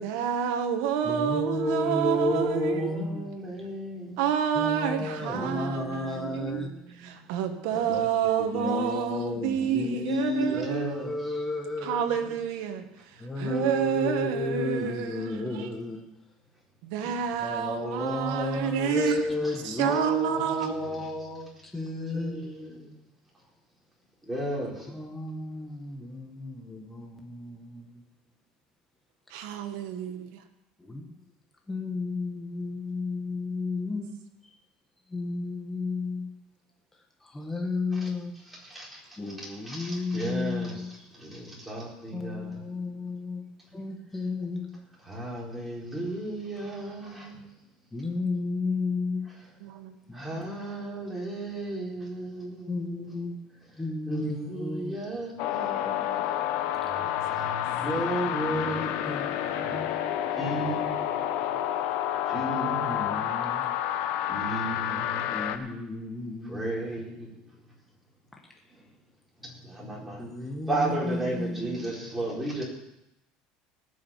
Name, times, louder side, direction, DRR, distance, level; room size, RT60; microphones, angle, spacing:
voice 1, 0.0-2.9 4.2-11.1 11.8-15.7 16.8-19.2 19.6-20.7 29.3-30.4 49.6-49.9 56.9-57.5, right 8 dB, 80° right, 7 dB, 1.6 m, -29 dB
voice 2, 1.0-3.3 4.5-6.7 7.7-8.1 8.5-12.4 13.2-16.0 17.0-17.1 17.4-22.4 24.9-28.0 30.8-31.1 31.7-34.1 35.1-36.3 37.2-38.3 39.2-40.9 42.1-43.4 43.7-44.7 47.9-49.3 50.1-50.3 52.7-53.4 53.8-55.0 59.1-59.3 62.8-63.7 65.3-66.8 70.2-71.8, left 3 dB, 10° left, 0 dB, 1.5 m, -32 dB
voice 3, 2.4-4.2 5.2-7.2 10.4-11.1 22.1-22.9 24.2-24.9 38.0-38.1 38.6-39.0 39.4-40.8 41.1-42.6 45.0-47.5 50.1-53.1 54.1-56.3 56.9-59.0 59.5-60.0 60.3-61.1 62.2-63.1 64.3-65.3 66.4-67.3 69.6-70.3 70.7-72.6, right 1 dB, 10° right, -4 dB, 4.4 m, -35 dB
sound 1, 55.4-65.6, left 11 dB, 70° left, 1.2 m, -29 dB
19.0 x 6.4 x 7.3 m, 0.86 s
cardioid pair, 145°, 2 cm